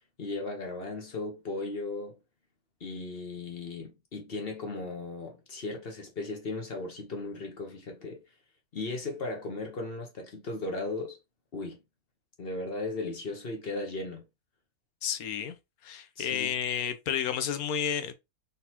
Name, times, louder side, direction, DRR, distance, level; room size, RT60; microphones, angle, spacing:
voice 1, 0.2-2.2 2.8-8.2 8.7-11.2 11.5-11.8 12.4-14.2 16.2-16.5, left 2 dB, 40° left, 1.2 m, -36 dB
voice 2, 15.0-15.6 15.8-18.1, left 8 dB, 75° left, 1.1 m, -31 dB
4.0 x 4.0 x 2.9 m
omnidirectional pair, 1.6 m